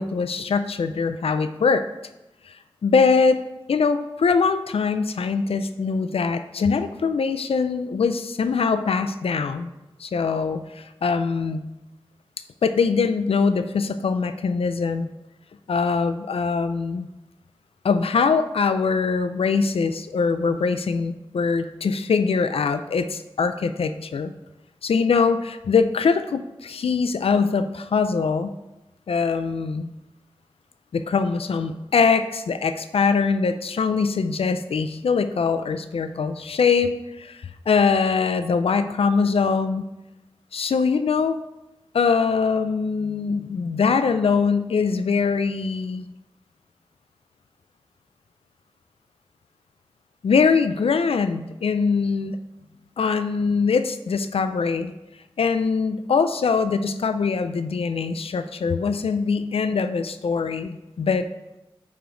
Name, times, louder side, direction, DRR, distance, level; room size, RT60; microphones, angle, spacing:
voice 1, 0.0-1.9 2.5-2.6 2.8-3.4 3.7-9.7 10.0-11.6 12.6-15.1 15.7-17.1 17.8-24.3 24.8-28.5 29.1-29.9 30.9-39.9 40.5-41.4 41.9-46.1 50.2-52.4 53.0-54.9 55.4-61.3, left 5 dB, 85° left, 10 dB, 0.4 m, -22 dB
9.4 x 5.1 x 3.8 m, 0.97 s
wide cardioid pair, 95°, 10 cm